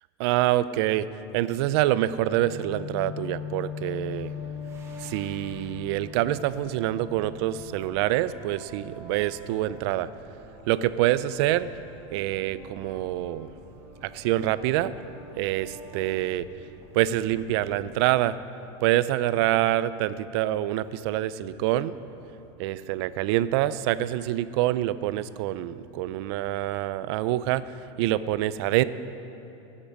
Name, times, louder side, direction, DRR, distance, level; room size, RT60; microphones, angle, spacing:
voice 1, 0.2-1.1 1.3-4.3 5.0-10.1 10.7-11.7 12.1-13.5 14.0-14.9 15.4-16.5 16.9-18.4 18.8-21.9 22.6-27.7 28.0-28.8, right 14 dB, 65° right, 15 dB, 0.4 m, -26 dB
sound 1, 1.7-17.2, right 1 dB, 90° left, 3.1 m, -49 dB
sound 2, 2.4-8.9 9.2-9.5 9.9-10.4 10.8-10.9, left 9 dB, 65° left, 0.7 m, -40 dB
sound 3, 4.1-18.0, right 2 dB, 20° right, 1.4 m, -52 dB
17.0 x 7.4 x 5.3 m, 2.9 s
supercardioid pair, 155°, 15 cm